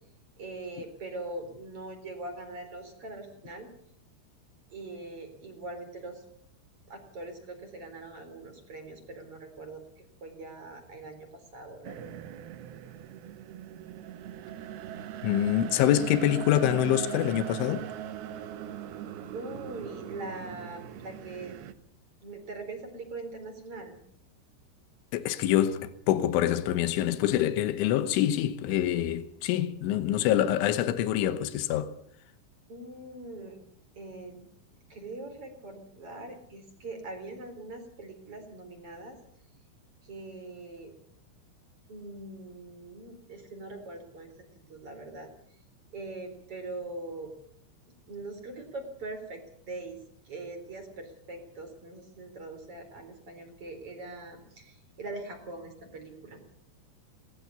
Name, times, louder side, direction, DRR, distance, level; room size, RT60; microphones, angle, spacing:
voice 1, 0.4-3.7 4.7-6.2 6.9-9.8 10.2-12.2 19.3-21.5 22.2-24.0 32.7-33.6 33.9-34.5 34.9-39.2 40.0-40.9 41.9-44.3 44.7-45.3 45.9-47.3 48.1-50.0 50.2-56.4, right 2 dB, 30° right, 4.4 m, -42 dB
sound 1, 11.8-21.7, right 10 dB, 70° right, 2.7 m, -40 dB
voice 2, 15.2-17.9 25.1-31.9, left 12 dB, 90° left, 3.5 m, -26 dB
20.5 x 19.0 x 7.0 m
omnidirectional pair, 5.4 m